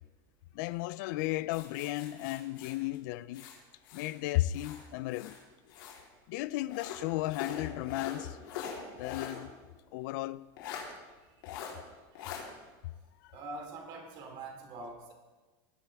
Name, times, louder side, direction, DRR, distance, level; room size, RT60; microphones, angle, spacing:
voice 1, 0.5-3.5 3.9-5.4 6.3-8.4 8.9-9.5 9.9-10.5 13.2-13.3, left 16 dB, 65° left, 0.4 m, -34 dB
sound 1, 1.5-4.2 4.5-6.1 6.7-9.4 9.8-9.9 10.6-10.9 11.4-11.7 12.2-12.4, left 7 dB, 80° left, 3.6 m, -43 dB
voice 2, 11.3-11.8 12.1-12.5 13.3-15.1, right 2 dB, 45° right, 2.8 m, -45 dB
19.5 x 10.5 x 3.5 m
supercardioid pair, 150°, 11 cm